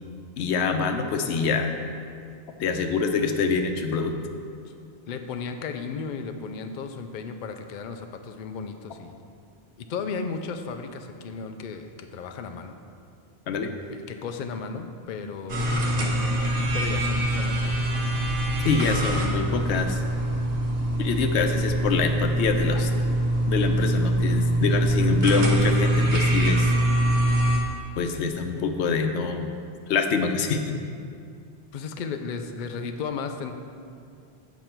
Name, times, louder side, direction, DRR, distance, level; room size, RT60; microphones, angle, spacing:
voice 1, 0.4-1.7 2.6-4.1 13.5-13.7 18.6-20.0 21.0-22.9 23.5-26.7 28.0-29.5 29.9-30.8, left 5 dB, 90° left, 6 dB, 0.9 m, -25 dB
voice 2, 5.1-9.2 9.8-12.8 13.9-16.0 16.7-18.0 31.7-33.5, left 5 dB, 55° left, 6 dB, 0.6 m, -35 dB
sound 1, 15.5-27.6, right 1 dB, 85° right, 1.3 m, -24 dB
8.1 x 5.3 x 4.5 m, 2.3 s
omnidirectional pair, 1.1 m